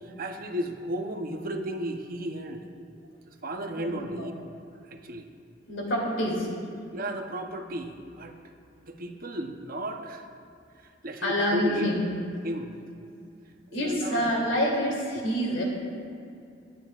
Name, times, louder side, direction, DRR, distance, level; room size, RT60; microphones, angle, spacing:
voice 1, 0.0-2.7 3.3-4.3 4.8-5.3 6.9-8.3 8.8-10.3 10.8-12.0 12.4-12.7 13.7-14.5 15.1-15.2, right 1 dB, 50° right, 5 dB, 0.8 m, -34 dB
voice 2, 3.8-4.3 5.7-6.5 11.2-12.2 13.7-15.6, equal, 85° left, -3 dB, 2.9 m, -27 dB
22.0 x 9.1 x 2.4 m, 2.5 s
head